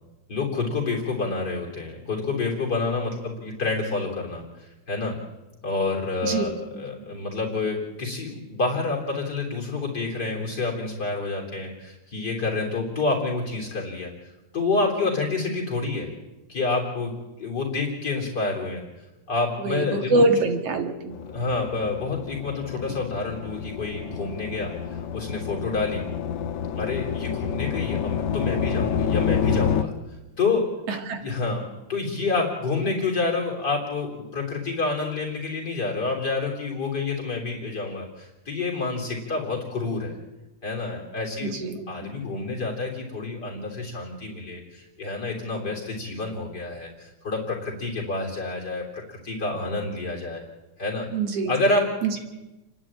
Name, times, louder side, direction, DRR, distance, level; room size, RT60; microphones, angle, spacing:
voice 1, 0.3-5.1 5.6-16.1 16.5-17.1 17.4-18.8 19.3-20.2 21.3-26.0 26.8-29.9 30.4-30.6 31.2-31.6 31.9-40.2 40.6-41.6 41.9-50.4 50.8-51.1 51.5-51.9, left 3 dB, 35° left, -1 dB, 3.9 m, -28 dB
voice 2, 20.1-21.1 22.9-23.0 31.1-31.2 41.5-42.1 51.1-51.5 52.0-52.1, right 2 dB, 55° right, 6 dB, 3.0 m, -24 dB
sound 1, 21.1-29.8, left 7 dB, 80° left, 2.5 m, -29 dB
29.5 x 11.5 x 8.8 m, 1.0 s
omnidirectional pair, 3.3 m